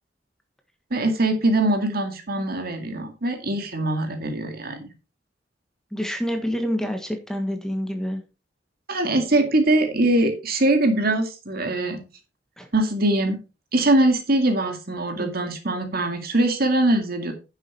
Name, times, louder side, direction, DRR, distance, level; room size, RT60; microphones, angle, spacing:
voice 1, 0.9-4.9 8.9-12.0 12.7-13.4 13.7-17.3, right 1 dB, 55° right, 5 dB, 2.2 m, -22 dB
voice 2, 5.9-8.2 12.6-12.7 15.2-15.3, equal, 5° left, 5 dB, 1.5 m, -27 dB
10.0 x 7.2 x 4.4 m, 0.29 s
head